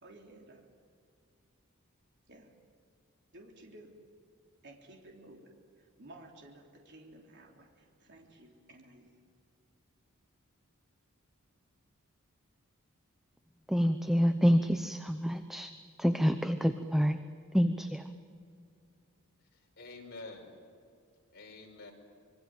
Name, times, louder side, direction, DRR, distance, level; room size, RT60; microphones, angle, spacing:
voice 1, 0.0-0.6 2.3-2.5 3.3-3.9 4.6-5.5 5.8-9.2, right 1 dB, 55° right, 1 dB, 3.5 m, -54 dB
voice 2, 13.7-15.7 16.0-17.2 17.5-18.1, equal, ahead, 8 dB, 0.8 m, -27 dB
voice 3, 19.4-20.5 21.3-21.9, left 3 dB, 50° left, 1 dB, 5.4 m, -48 dB
26.0 x 23.5 x 7.9 m, 2.4 s
head